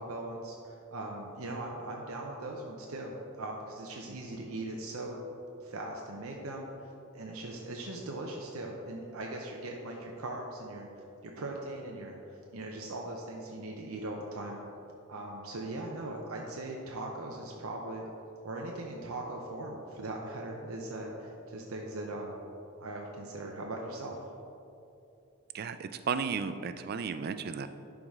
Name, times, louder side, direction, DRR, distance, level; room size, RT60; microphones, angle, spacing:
voice 1, 0.0-5.2 5.6-10.9 11.2-14.6 15.1-18.0 18.4-22.4 22.8-24.1, right 2 dB, 75° right, 0 dB, 0.7 m, -40 dB
voice 2, 25.5-27.7, right 6 dB, 45° right, 11 dB, 0.3 m, -34 dB
11.0 x 4.9 x 3.6 m, 2.8 s
head